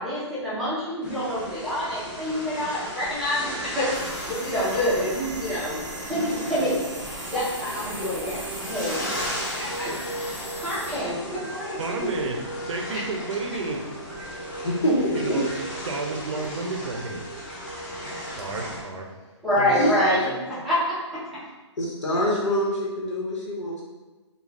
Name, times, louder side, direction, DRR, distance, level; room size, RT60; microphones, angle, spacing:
voice 1, 0.0-3.9 4.2-5.8 6.1-6.9 7.2-9.0 9.5-10.2 10.6-12.1 12.9-13.0 19.4-21.2, equal, ahead, -13 dB, 0.6 m, -27 dB
sound 1, 1.0-18.8, equal, 40° left, 0.8 m, -37 dB
sound 2, 3.9-10.9, right 1 dB, 40° right, 0.7 m, -39 dB
sound 3, 7.4-19.5, right 2 dB, 55° left, 1.3 m, -40 dB
voice 2, 11.8-12.4 12.7-13.8 15.1-15.5 15.8-17.3 18.2-19.1 19.6-20.2 20.6-20.7, right 3 dB, 75° right, 2 dB, 0.5 m, -31 dB
voice 3, 14.6-15.4 18.3-18.4 19.7-19.9 21.8-23.8, equal, 75° left, -4 dB, 1.0 m, -25 dB
2.3 x 2.3 x 3.2 m, 1.2 s
hypercardioid pair, 165°, 16 cm